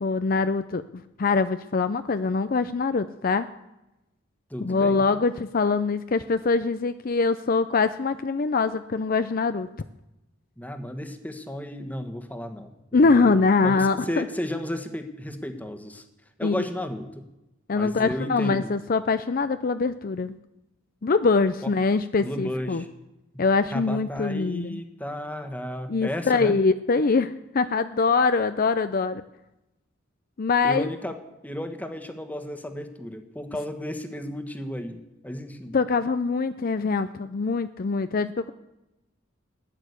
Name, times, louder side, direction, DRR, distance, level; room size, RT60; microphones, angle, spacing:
voice 1, 0.0-3.5 4.6-9.7 12.9-14.3 16.4-16.7 17.7-20.3 21.0-22.8 23.4-24.8 25.9-29.2 30.4-30.9 35.7-38.5, left 4 dB, 45° left, 12 dB, 0.5 m, -23 dB
voice 2, 4.5-5.2 10.6-16.0 16.4-17.2 17.7-18.7 22.2-22.9 23.3-23.4 23.7-26.5 30.6-31.2 31.4-35.8, equal, 10° left, 6 dB, 1.4 m, -33 dB
15.5 x 10.0 x 8.3 m, 0.94 s
head